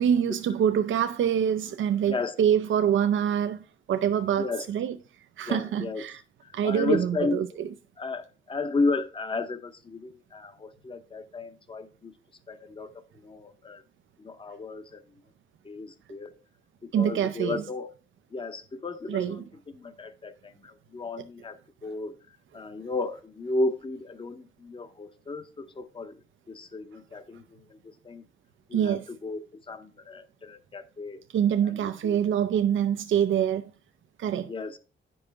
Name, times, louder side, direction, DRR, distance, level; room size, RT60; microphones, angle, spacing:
voice 1, 0.0-3.6 3.9-4.9 5.4-6.2 6.5-7.5 16.9-17.6 19.1-19.4 28.7-29.0 31.3-33.6 34.2-34.5, right 9 dB, 80° right, 0.5 m, -25 dB
voice 2, 5.5-6.0 6.4-7.6 8.0-12.1 12.5-13.8 14.2-15.1 15.6-16.4 16.8-17.9 18.3-26.2 26.5-28.2 28.7-31.2 31.6-32.2 34.5-34.8, left 3 dB, 25° left, 0.7 m, -34 dB
10.0 x 5.4 x 3.4 m
wide cardioid pair, 150°, 20 cm